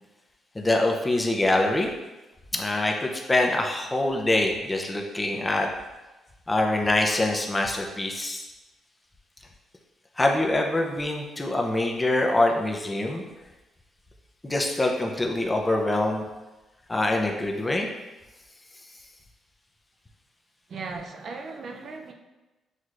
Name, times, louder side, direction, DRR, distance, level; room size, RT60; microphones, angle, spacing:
voice 1, 0.5-1.9 2.5-5.7 6.5-8.5 10.2-13.2 14.4-16.2 16.9-17.9, left 2 dB, 15° left, 2 dB, 0.6 m, -24 dB
voice 2, 20.7-22.1, right 4 dB, 55° right, 3 dB, 0.5 m, -37 dB
6.4 x 3.0 x 2.5 m, 1.1 s
cardioid pair, 90°, 0 cm